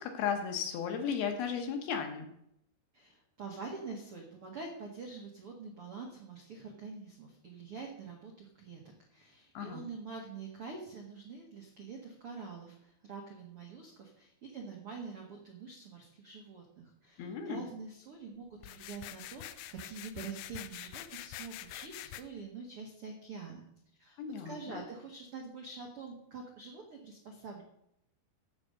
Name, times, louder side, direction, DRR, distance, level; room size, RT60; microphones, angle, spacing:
voice 1, 0.0-2.3 9.5-9.8 17.2-17.7 24.2-24.8, left 7 dB, 70° left, 5 dB, 2.8 m, -35 dB
voice 2, 2.9-23.7 24.0-24.2 24.4-27.6, right 4 dB, 80° right, 0 dB, 1.2 m, -46 dB
sound 1, 18.6-22.2, left 14 dB, 85° left, 2.4 m, -46 dB
14.5 x 5.1 x 6.6 m, 0.75 s
omnidirectional pair, 5.2 m